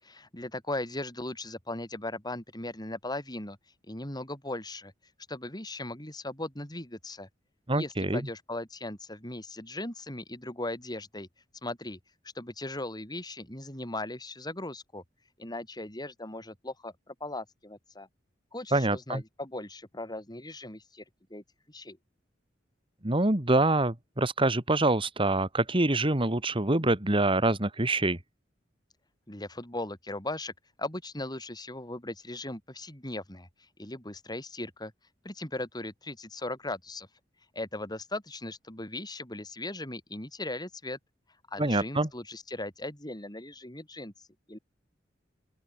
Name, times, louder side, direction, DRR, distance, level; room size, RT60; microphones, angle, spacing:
voice 1, 0.0-3.6 3.9-4.9 5.3-7.3 7.7-11.3 11.6-12.0 12.3-15.0 15.4-18.1 18.5-21.0 21.3-22.0 29.3-30.5 30.8-33.5 33.8-34.9 35.2-37.1 37.5-41.0 41.5-44.6, left 2 dB, 25° left, 7.9 m, -38 dB
voice 2, 7.7-8.2 18.7-19.2 23.0-28.2 41.6-42.1, right 2 dB, 30° right, 2.2 m, -25 dB
open air
head